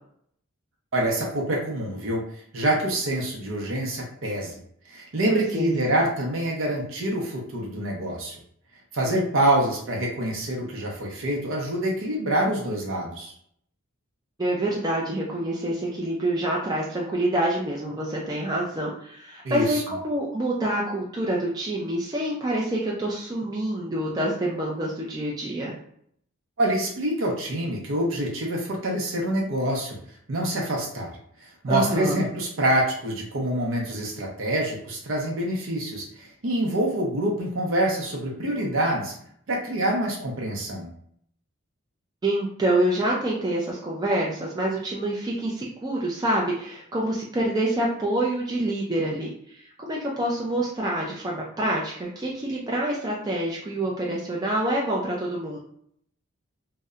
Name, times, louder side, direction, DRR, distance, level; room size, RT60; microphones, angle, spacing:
voice 1, 0.9-2.2 2.5-4.6 4.9-8.4 8.9-13.3 19.4-19.8 26.6-30.0 30.3-31.1 31.6-39.1 39.5-40.9, right 1 dB, 65° right, -1 dB, 0.6 m, -26 dB
voice 2, 5.3-5.8 14.4-25.8 31.7-32.2 42.2-55.6, right 1 dB, 20° right, -4 dB, 0.3 m, -27 dB
2.7 x 2.0 x 2.3 m, 0.66 s
head